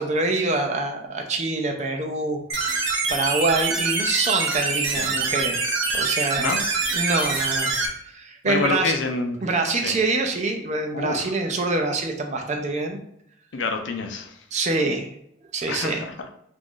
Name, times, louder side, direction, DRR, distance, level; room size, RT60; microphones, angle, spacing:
voice 1, 0.0-2.8 3.1-5.6 5.9-6.5 6.9-9.0 9.4-13.0 14.5-15.1 15.5-16.0, right 3 dB, 40° right, 3 dB, 0.5 m, -25 dB
sound 1, 2.5-7.9, right 4 dB, 80° right, 0.7 m, -25 dB
voice 2, 8.4-9.4 9.7-10.0 10.9-11.3 13.5-14.4 15.7-16.1, left 3 dB, 70° left, 4 dB, 0.5 m, -27 dB
3.0 x 2.5 x 3.7 m, 0.74 s
head